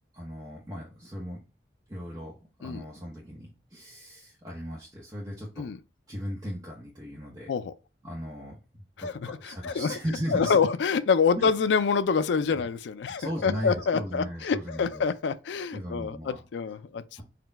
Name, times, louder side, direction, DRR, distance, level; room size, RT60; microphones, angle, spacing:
voice 1, 0.1-1.4 1.9-5.7 6.1-7.5 8.0-10.6 11.3-11.5 12.5-12.7 13.0-15.1 15.7-16.4 17.2-17.3, equal, 20° right, 0.8 m, -37 dB
voice 2, 9.0-9.9 10.3-17.2, left 5 dB, 75° left, 0.4 m, -26 dB
4.2 x 2.2 x 4.0 m
head